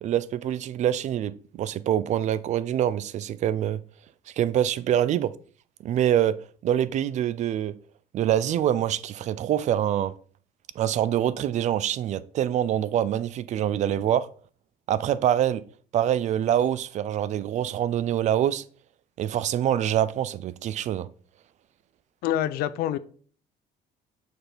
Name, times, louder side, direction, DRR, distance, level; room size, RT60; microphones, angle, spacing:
voice 1, 0.0-3.8 4.4-5.3 5.8-6.4 6.6-7.7 8.1-10.1 10.8-14.3 14.9-15.6 15.9-18.6 19.2-21.1, right 11 dB, 50° right, 0.4 m, -25 dB
voice 2, 22.2-23.0, left 12 dB, 75° left, 0.5 m, -26 dB
6.6 x 4.3 x 3.4 m
cardioid pair, 125°, 16 cm